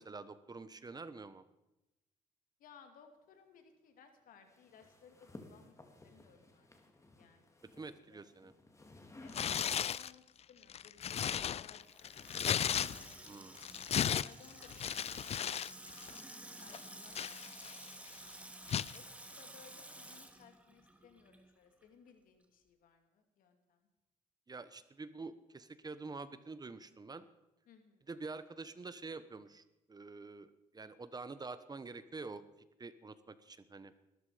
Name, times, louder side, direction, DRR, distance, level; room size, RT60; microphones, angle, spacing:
voice 1, 0.0-1.4 7.8-8.5 13.3-13.7 24.5-27.3 28.1-32.4 32.8-33.9, right 3 dB, 30° right, 13 dB, 1.1 m, -47 dB
voice 2, 2.6-5.7 6.0-6.7 7.1-8.3 9.2-12.1 12.7-13.1 14.2-15.3 15.6-16.0 16.3-17.8 18.9-23.9 27.7-28.1, left 6 dB, 75° left, 6 dB, 2.7 m, -62 dB
sound 1, 4.5-10.1 11.1-14.7, left 2 dB, 20° left, 2.6 m, -59 dB
Tearing, 9.3-10.1 10.6-13.3 13.6-15.7 16.0-16.2 16.7-17.9 18.7-19.0, left 9 dB, 45° left, 0.5 m, -35 dB
Water tap faucet / Sink (filling or washing), 11.8-21.5 21.8-21.9, right 1 dB, 10° right, 2.4 m, -52 dB
20.0 x 13.5 x 5.1 m, 0.96 s
cardioid pair, 85°, 14 cm